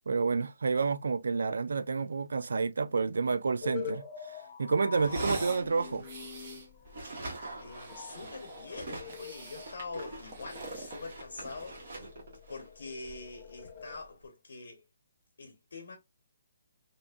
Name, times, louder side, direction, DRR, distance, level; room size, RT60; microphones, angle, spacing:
voice 1, 0.1-4.0 4.6-6.1, right 4 dB, 80° right, 0.3 m, -29 dB
sound 1, 3.6-14.0, left 8 dB, 25° left, 0.4 m, -46 dB
sound 2, 4.9-6.6 6.8-14.1, right 1 dB, 60° right, 1.1 m, -43 dB
sound 3, 5.0-5.7 6.0-6.7 7.5-8.7 9.1-9.7 10.2-11.7, right 2 dB, 25° right, 0.7 m, -45 dB
voice 2, 7.6-12.1 12.5-14.8 15.4-16.0, left 3 dB, 65° left, 0.7 m, -44 dB
2.8 x 2.5 x 2.2 m
hypercardioid pair, 175°, 0 cm